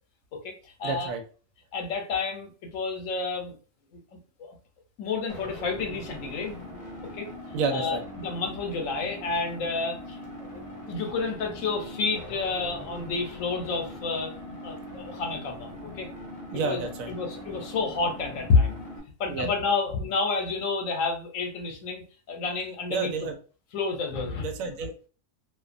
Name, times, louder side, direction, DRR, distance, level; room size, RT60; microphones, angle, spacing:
voice 1, 0.3-1.1 1.7-3.5 3.9-4.6 5.0-6.6 7.1-7.3 7.7-10.2 10.5-10.6 10.9-16.1 16.6-18.8 19.2-23.1 23.7-24.5, left 4 dB, 80° left, 3 dB, 1.0 m, -30 dB
voice 2, 0.8-1.2 7.5-8.0 16.5-17.1 19.3-19.5 22.9-23.4 24.4-25.1, right 4 dB, 85° right, 5 dB, 1.0 m, -30 dB
sound 1, 5.3-19.0, left 1 dB, 35° left, 0.7 m, -41 dB
2.4 x 2.1 x 2.4 m, 0.38 s
omnidirectional pair, 1.4 m